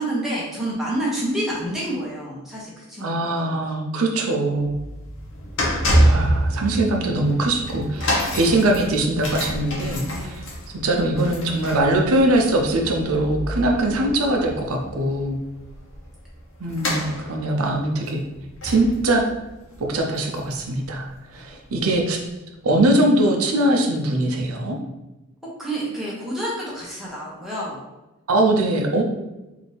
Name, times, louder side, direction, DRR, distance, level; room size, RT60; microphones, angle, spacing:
voice 1, 0.0-3.6 10.1-10.4 21.4-21.5 25.6-27.8, right 1 dB, ahead, -6 dB, 0.9 m, -28 dB
voice 2, 3.0-4.7 6.0-10.3 10.7-15.4 16.6-18.2 18.6-19.2 19.8-22.2 22.6-24.8 28.3-29.0, right 1 dB, 80° right, 2 dB, 0.6 m, -21 dB
sound 1, 4.5-20.9 21.1-21.4 22.1-22.2, equal, 60° left, 1.0 m, -27 dB
4.1 x 2.7 x 3.3 m, 1.0 s
head